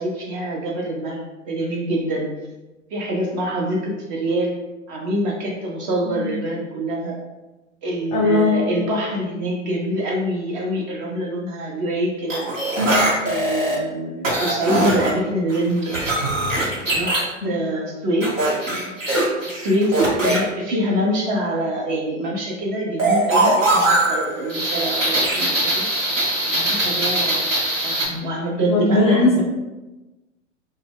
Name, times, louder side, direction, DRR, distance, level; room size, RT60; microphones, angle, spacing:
voice 1, 0.0-2.3 2.9-4.6 4.9-7.2 7.8-12.5 13.2-16.0 16.9-18.3 19.4-19.9 20.2-25.9 26.5-27.5 27.8-29.4, equal, 40° right, -2 dB, 0.5 m, -25 dB
voice 2, 8.1-8.6 17.4-17.5 28.7-29.4, left 2 dB, 15° left, -5 dB, 0.6 m, -18 dB
sound 1, 12.3-13.8 14.2-15.1 15.5-17.2 18.2-20.4 23.0-28.1, right 1 dB, 80° right, 1.0 m, -21 dB
2.1 x 2.0 x 3.4 m, 1.1 s
figure-of-eight pair, 100°, 38 cm